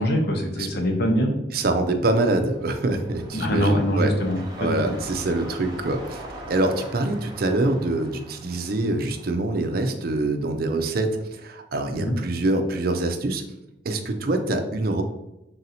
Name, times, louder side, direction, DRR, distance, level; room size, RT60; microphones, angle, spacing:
voice 1, 0.0-1.3 3.3-4.9 11.9-12.2, equal, 60° left, 3 dB, 0.8 m, -23 dB
voice 2, 1.5-4.1 4.6-13.4 13.8-15.0, right 2 dB, 55° right, 6 dB, 0.5 m, -25 dB
sound 1, 2.2-10.5 10.9-11.0, right 1 dB, 25° right, 0.8 m, -42 dB
3.9 x 2.7 x 4.1 m, 0.91 s
head